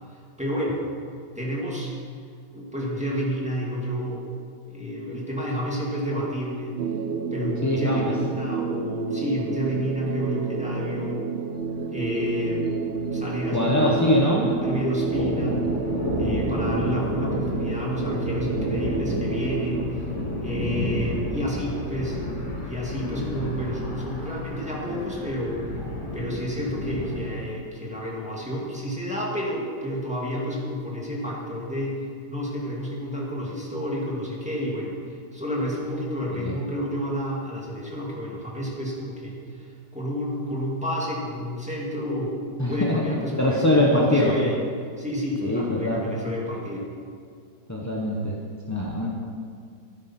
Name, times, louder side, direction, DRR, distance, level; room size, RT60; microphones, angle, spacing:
voice 1, 0.4-0.8 1.4-1.9 2.5-4.3 4.7-6.8 7.3-11.3 11.9-12.6 13.1-15.6 16.2-20.0 20.4-22.2 22.6-25.6 26.1-32.0 32.3-35.0 35.3-44.6 45.0-46.9, equal, 5° right, -4 dB, 2.2 m, -30 dB
sound 1, 6.8-19.8, right 5 dB, 80° right, 0.5 m, -30 dB
voice 2, 7.6-8.1 13.5-14.5 23.1-23.5 36.4-36.5 42.6-44.3 45.4-46.1 47.7-48.4 48.7-49.1, left 1 dB, 15° left, -3 dB, 0.6 m, -23 dB
Thunder, 11.6-11.8 12.0-12.1 12.4-13.9 14.2-27.2, left 1 dB, 60° left, 3.3 m, -31 dB
13.5 x 10.5 x 4.3 m, 2.2 s
omnidirectional pair, 1.9 m